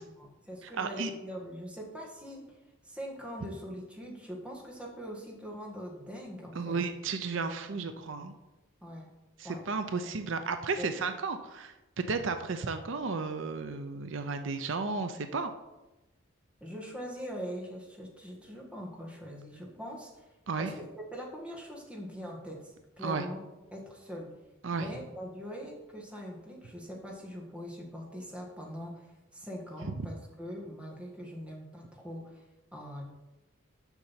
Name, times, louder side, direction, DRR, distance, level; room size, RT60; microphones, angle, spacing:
voice 1, 0.0-2.6 2.8-6.8 8.8-9.1 9.4-9.6 10.8-11.0 16.6-20.3 20.6-23.4 23.7-24.3 24.7-29.1 29.3-32.4 32.7-33.0, equal, 5° right, -2 dB, 1.7 m, -42 dB
voice 2, 0.8-1.1 6.5-8.3 9.4-15.5 20.5-20.7 23.0-23.2 24.6-24.9, right 4 dB, 70° right, 8 dB, 0.6 m, -33 dB
7.2 x 6.5 x 5.7 m, 1.0 s
head